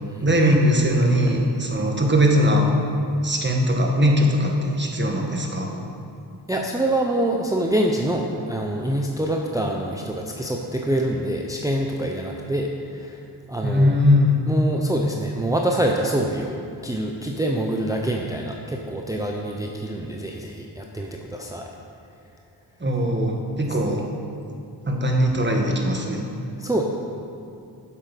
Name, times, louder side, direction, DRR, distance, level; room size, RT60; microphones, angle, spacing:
voice 1, 0.2-2.7 3.2-5.7 13.6-14.4 22.8-24.0 24.9-26.3, equal, 25° right, 1 dB, 1.3 m, -20 dB
voice 2, 6.5-13.2 13.5-14.0 14.5-16.6 16.8-21.7 23.5-23.8 26.6-26.8, right 1 dB, 10° right, 0 dB, 0.6 m, -25 dB
7.9 x 7.6 x 5.3 m, 2.7 s
wide cardioid pair, 80°, 44 cm